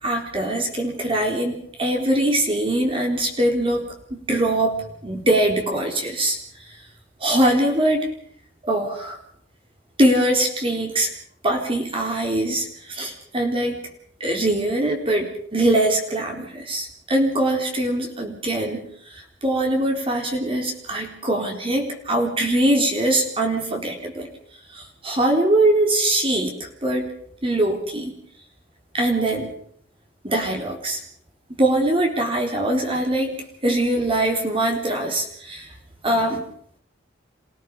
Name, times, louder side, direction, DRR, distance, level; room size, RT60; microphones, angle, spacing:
voice 1, 0.0-4.7 5.0-6.4 7.2-8.1 8.6-9.2 10.0-11.1 11.4-13.8 14.2-18.8 19.1-24.3 24.7-26.6 26.8-27.1 27.4-28.2 28.9-29.5 30.2-31.0 31.5-33.4 33.6-35.7 36.0-36.5, right 1 dB, 30° right, 2 dB, 4.1 m, -22 dB
28.5 x 17.0 x 5.5 m, 0.62 s
head